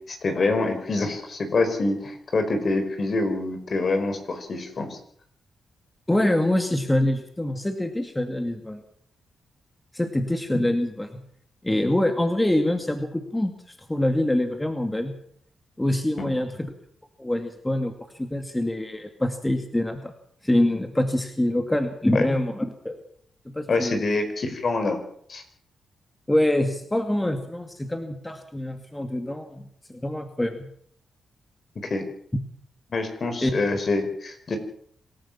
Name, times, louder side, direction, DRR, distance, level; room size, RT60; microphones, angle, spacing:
voice 1, 0.1-5.0 16.2-16.3 22.1-22.2 23.7-25.0 25.3-25.4 31.8-32.0 32.9-34.6, left 3 dB, 50° left, 7 dB, 4.9 m, -26 dB
voice 2, 6.1-8.8 9.9-11.2 11.6-15.1 15.8-16.7 17.2-20.1 20.4-23.0 23.5-24.0 26.3-29.6 29.9-30.7 33.4-33.5, left 1 dB, 10° left, 6 dB, 2.4 m, -25 dB
26.0 x 14.0 x 7.4 m, 0.65 s
cardioid pair, 85°, 0 cm